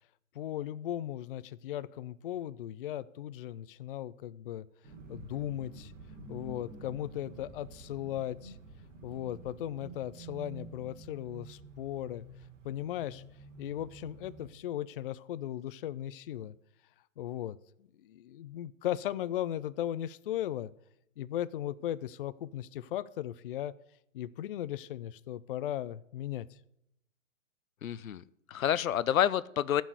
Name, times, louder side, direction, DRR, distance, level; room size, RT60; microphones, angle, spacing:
voice 1, 0.3-4.7 5.1-5.9 6.3-8.6 9.0-12.2 12.6-13.2 13.6-16.5 17.2-17.6 18.0-20.7 21.2-23.7 24.1-26.6, left 12 dB, 45° left, 0.4 m, -37 dB
sound 1, 4.8-14.5, right 3 dB, 65° right, 3.2 m, -49 dB
voice 2, 27.8-29.8, left 10 dB, 80° left, 0.7 m, -29 dB
14.5 x 6.3 x 8.0 m
hypercardioid pair, 135°, 40 cm